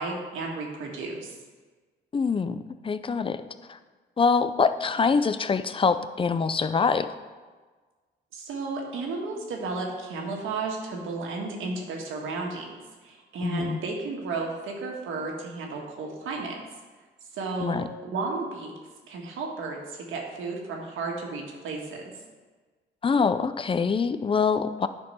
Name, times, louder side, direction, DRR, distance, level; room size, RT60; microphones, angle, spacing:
voice 1, 0.0-1.4 8.3-16.6 17.3-17.8 18.0-18.7 19.1-22.1, right 3 dB, 85° right, 0 dB, 1.7 m, -33 dB
voice 2, 2.1-2.6 2.8-3.4 3.7-3.8 4.2-7.1 13.4-13.8 17.6-17.8 23.0-24.9, left 5 dB, 25° left, 12 dB, 0.5 m, -24 dB
9.4 x 4.5 x 5.6 m, 1.4 s
cardioid pair, 90°, 20 cm